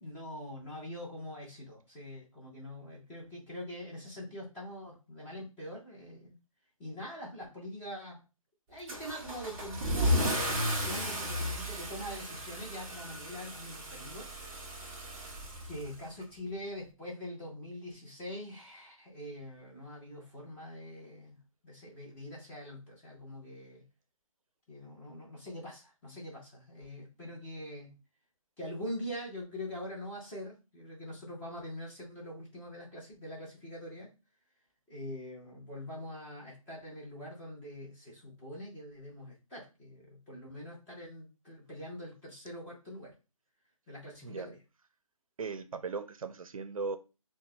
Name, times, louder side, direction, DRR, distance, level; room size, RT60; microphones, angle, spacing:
voice 1, 0.0-6.4 6.8-8.2 8.7-14.2 15.7-23.8 24.7-28.0 28.6-34.1 34.9-43.1 43.9-44.6, left 1 dB, 10° left, 0.8 m, -44 dB
Car / Engine starting / Accelerating revving vroom, 8.9-16.2, equal, 10° right, 0.4 m, -34 dB
voice 2, 45.4-47.0, right 4 dB, 70° right, 0.5 m, -37 dB
5.5 x 2.2 x 2.3 m
figure-of-eight pair, 155°, 18 cm